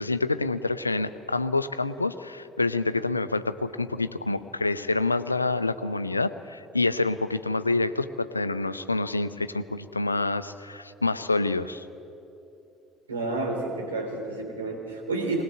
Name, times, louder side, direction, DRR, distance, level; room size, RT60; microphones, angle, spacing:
voice 1, 0.0-11.9, left 3 dB, 85° left, 14 dB, 0.5 m, -27 dB
voice 2, 13.1-15.4, right 2 dB, 80° right, 0 dB, 3.6 m, -30 dB
21.5 x 19.5 x 8.1 m, 3.0 s
figure-of-eight pair, 55°, 0 cm